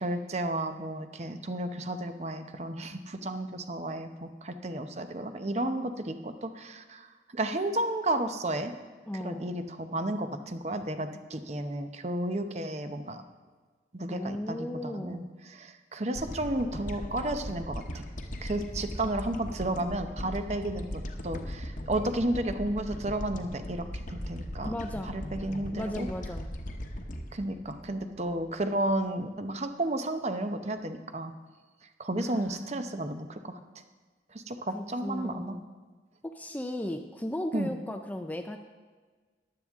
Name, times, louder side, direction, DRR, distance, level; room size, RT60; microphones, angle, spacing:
voice 1, 0.0-7.1 7.3-8.7 9.2-13.2 13.9-18.0 18.4-24.7 25.0-26.1 27.3-31.3 32.0-33.6 34.3-35.6 37.5-37.7, right 1 dB, 40° right, 8 dB, 0.7 m, -32 dB
voice 2, 9.1-9.5 14.1-15.3 24.6-25.1 25.7-26.5 32.2-32.8 34.7-35.6 36.2-38.6, left 1 dB, 10° left, 5 dB, 0.5 m, -36 dB
sound 1, 16.1-28.6, equal, 45° left, 1.0 m, -39 dB
14.5 x 11.0 x 3.6 m, 1.4 s
head